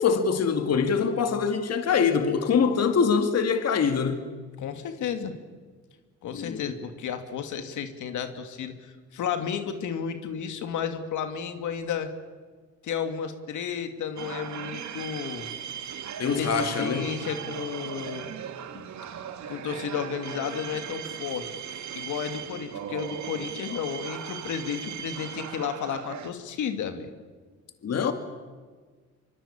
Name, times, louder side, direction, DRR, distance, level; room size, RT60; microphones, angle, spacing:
voice 1, 0.0-4.3 6.3-6.7 16.2-17.2 27.8-28.1, left 6 dB, 55° left, 2.3 m, -24 dB
voice 2, 4.6-5.3 6.2-12.1 12.8-15.5 16.4-18.3 18.7-18.9 19.5-21.5 21.9-27.1, left 7 dB, 75° left, 2.5 m, -32 dB
sound 1, 14.2-26.3, right 9 dB, 70° right, 2.2 m, -38 dB
25.0 x 24.0 x 8.8 m
cardioid pair, 90°, 30 cm